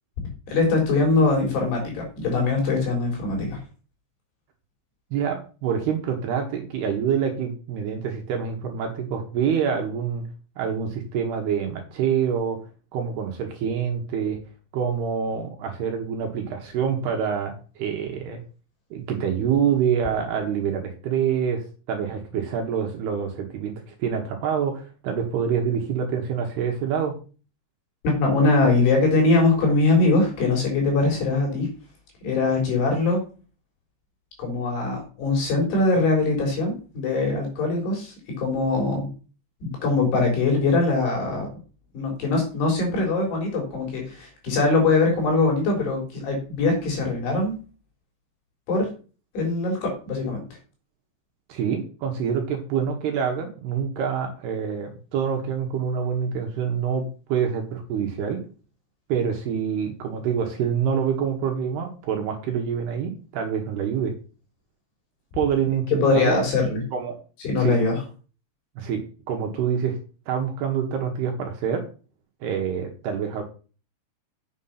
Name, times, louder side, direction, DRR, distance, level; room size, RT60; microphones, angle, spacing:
voice 1, 0.5-3.6 28.0-31.7 32.2-33.2 34.4-39.1 39.6-41.5 41.9-47.6 48.7-48.9 49.3-50.4 66.0-66.8 67.4-68.0, left 3 dB, 60° left, 0 dB, 5.5 m, -22 dB
voice 2, 5.1-10.2 10.6-12.6 12.9-14.4 14.7-18.4 18.9-21.6 21.9-27.1 51.5-57.0 57.3-58.4 59.1-64.1 65.3-66.4 66.9-67.1 67.6-67.8 68.8-69.0 69.3-70.0 70.3-71.8 72.4-73.4, right 7 dB, 70° right, 2 dB, 2.9 m, -26 dB
8.2 x 6.6 x 5.7 m, 0.37 s
omnidirectional pair, 5.5 m